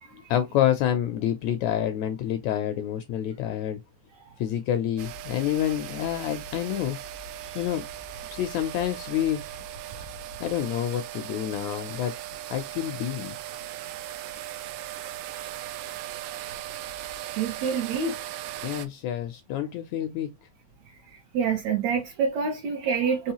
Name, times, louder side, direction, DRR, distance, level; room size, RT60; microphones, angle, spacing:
voice 1, 0.3-3.8 4.4-7.0 7.6-7.8 8.3-9.4 10.4-12.1 12.5-13.3 18.6-20.3, left 11 dB, 75° left, 1.7 m, -28 dB
sound 1, 5.0-18.9, right 11 dB, 90° right, 2.2 m, -38 dB
voice 2, 17.4-18.3 21.1-23.3, right 6 dB, 70° right, 2.0 m, -27 dB
5.5 x 3.0 x 2.9 m
omnidirectional pair, 3.7 m